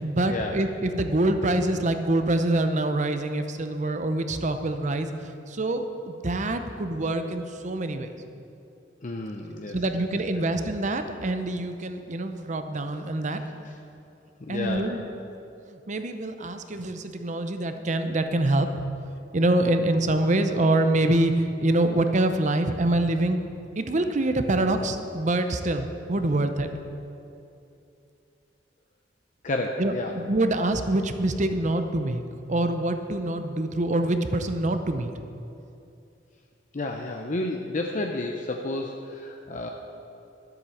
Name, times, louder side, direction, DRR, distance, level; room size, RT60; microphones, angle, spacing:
voice 1, 0.0-5.1 5.5-8.1 9.7-13.4 14.5-15.0 15.7-18.7 19.3-23.4 23.8-26.7 29.8-32.2 32.5-35.1, right 1 dB, 40° right, 8 dB, 0.7 m, -25 dB
voice 2, 9.0-10.0 14.4-14.9 29.4-30.1 36.7-39.7, left 2 dB, 45° left, 2 dB, 0.7 m, -31 dB
11.5 x 8.0 x 7.2 m, 2.8 s
head